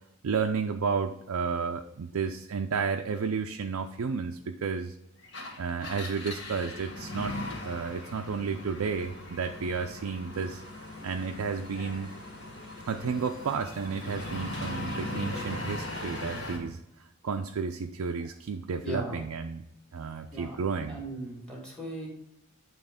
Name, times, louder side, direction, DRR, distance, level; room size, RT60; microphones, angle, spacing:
voice 1, 0.2-5.0 5.6-7.4 7.6-10.6 11.0-12.1 12.9-16.8 17.2-19.6 19.9-21.0, right 5 dB, 80° right, 5 dB, 0.4 m, -32 dB
Engine, 5.2-16.7, left 2 dB, 50° left, 1.5 m, -39 dB
sound 1, 10.3-16.2, right 2 dB, 20° right, 1.0 m, -54 dB
voice 2, 18.8-19.2 20.3-20.6 20.9-22.1, right 1 dB, 5° left, -2 dB, 1.7 m, -38 dB
9.3 x 3.1 x 5.0 m, 0.83 s
head